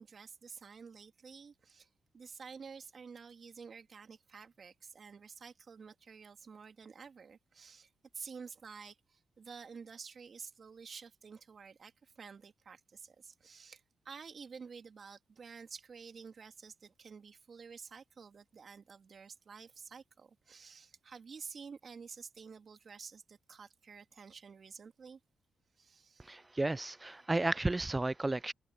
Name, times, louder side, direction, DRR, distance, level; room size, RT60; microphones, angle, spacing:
voice 1, 0.0-1.9 2.1-7.9 8.1-25.2 25.8-26.3 27.0-27.2, right 5 dB, 55° right, 2.7 m, -51 dB
voice 2, 26.2-28.5, right 2 dB, 25° right, 0.3 m, -33 dB
supercardioid pair, 50°, 0 cm